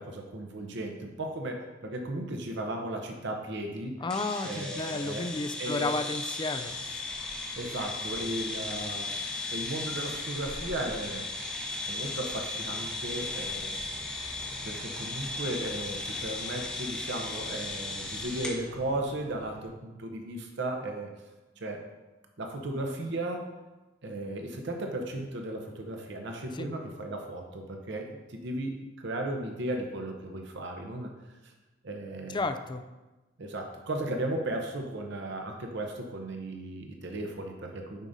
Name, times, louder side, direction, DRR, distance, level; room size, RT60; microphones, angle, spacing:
voice 1, 0.0-4.0 4.4-5.3 5.6-5.9 7.5-9.1 9.5-11.3 11.9-13.8 14.6-21.1 21.6-21.9 22.4-23.5 24.0-31.1 31.4-31.5 31.8-32.4 33.4-38.1, right 1 dB, 65° right, 3 dB, 0.8 m, -35 dB
voice 2, 4.0-7.0 26.6-26.7 32.3-32.8, left 3 dB, 25° left, 8 dB, 0.3 m, -32 dB
sound 1, 4.1-18.6, left 3 dB, 5° left, 0.9 m, -36 dB
sound 2, 6.5-19.7, right 1 dB, 35° right, 0.9 m, -49 dB
9.0 x 5.1 x 2.7 m, 1.1 s
head